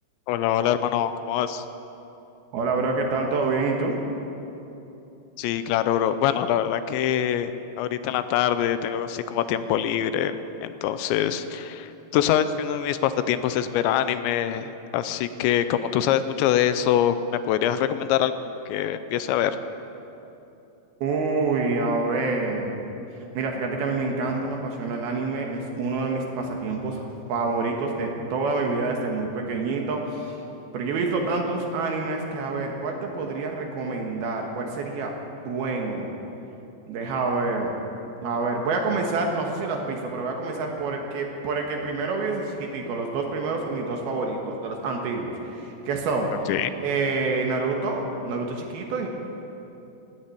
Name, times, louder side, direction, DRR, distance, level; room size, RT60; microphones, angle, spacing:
voice 1, 0.3-1.6 5.4-7.5 7.8-10.4 10.6-17.2 17.4-18.3 18.7-19.5 46.5-46.7, left 10 dB, 85° left, 11 dB, 2.9 m, -24 dB
voice 2, 2.5-4.0 21.0-22.8 23.2-30.4 30.7-35.1 35.4-36.1 36.9-37.7 38.2-46.3 46.8-49.1, right 3 dB, 65° right, 1 dB, 3.0 m, -27 dB
17.5 x 9.8 x 8.5 m, 2.9 s
omnidirectional pair, 5.2 m